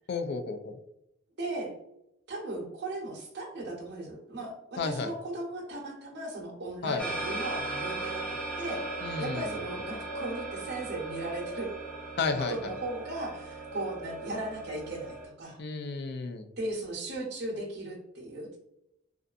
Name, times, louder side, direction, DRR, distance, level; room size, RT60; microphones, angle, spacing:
voice 1, 0.1-0.8 4.8-5.1 6.8-7.0 9.0-9.5 12.2-12.7 15.6-16.4, left 4 dB, 55° left, 7 dB, 0.3 m, -32 dB
voice 2, 1.4-1.7 2.3-8.8 9.2-11.7 12.4-15.6 16.6-18.6, right 2 dB, 60° right, -2 dB, 0.7 m, -37 dB
sound 1, 7.0-15.2, right 2 dB, 5° left, 0.7 m, -37 dB
2.5 x 2.4 x 2.4 m, 0.82 s
head